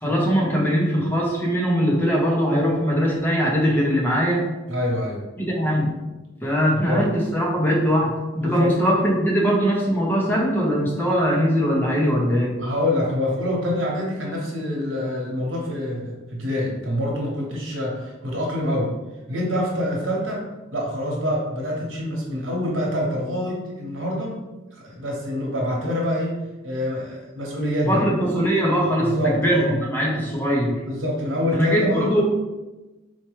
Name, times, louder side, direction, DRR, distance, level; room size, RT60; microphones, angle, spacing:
voice 1, 0.0-4.4 5.4-5.9 6.4-12.6 27.9-30.8 31.5-32.2, equal, 10° left, -3 dB, 0.7 m, -21 dB
voice 2, 4.7-5.2 6.7-7.1 8.4-8.8 12.6-18.9 19.3-20.4 20.7-24.4 24.7-28.0 29.0-29.8 30.2-30.3 30.8-32.1, left 1 dB, 80° right, -3 dB, 1.0 m, -26 dB
4.4 x 2.2 x 3.1 m, 1.1 s
head